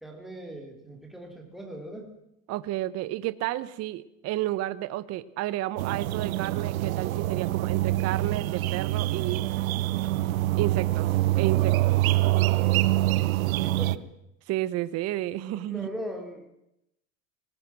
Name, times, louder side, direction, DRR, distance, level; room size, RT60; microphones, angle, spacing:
voice 1, 0.0-2.2 13.5-14.1 15.6-16.5, equal, ahead, 1 dB, 3.9 m, -39 dB
voice 2, 2.5-9.5 10.5-11.1 11.4-12.1 14.5-15.9, right 14 dB, 40° right, 15 dB, 1.1 m, -31 dB
sound 1, 5.8-14.0, right 17 dB, 85° right, 1.0 m, -25 dB
25.0 x 20.0 x 6.2 m, 0.81 s
supercardioid pair, 145°, 40 cm